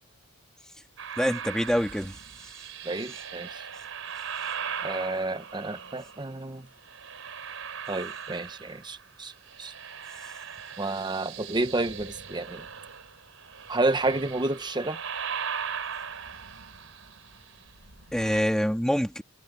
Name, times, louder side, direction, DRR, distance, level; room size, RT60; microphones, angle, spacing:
sound 1, 1.0-6.3 6.8-9.1 9.3-18.4, right 7 dB, 70° right, 4.3 m, -39 dB
voice 1, 1.2-2.1 18.1-19.2, equal, 5° left, 2.7 m, -25 dB
voice 2, 2.8-3.7 4.8-6.7 7.9-9.3 9.6-9.7 10.8-12.6 13.7-15.0, right 2 dB, 20° right, 0.9 m, -30 dB
head